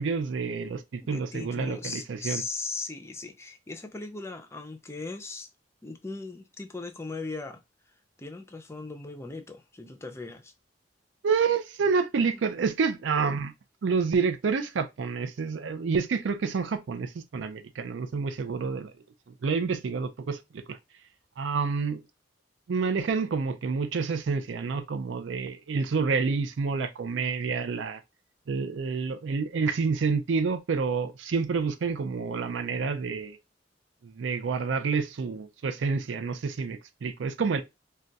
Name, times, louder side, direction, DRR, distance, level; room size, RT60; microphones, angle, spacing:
voice 1, 0.0-2.4 11.2-13.5 13.8-18.9 19.4-20.8 21.4-22.0 22.7-28.0 28.5-33.4 34.0-37.6, right 5 dB, 85° right, 0.4 m, -28 dB
voice 2, 1.0-5.5 5.8-7.6 8.2-10.5 12.2-12.4, left 3 dB, 15° left, 0.4 m, -38 dB
2.3 x 2.2 x 3.8 m
head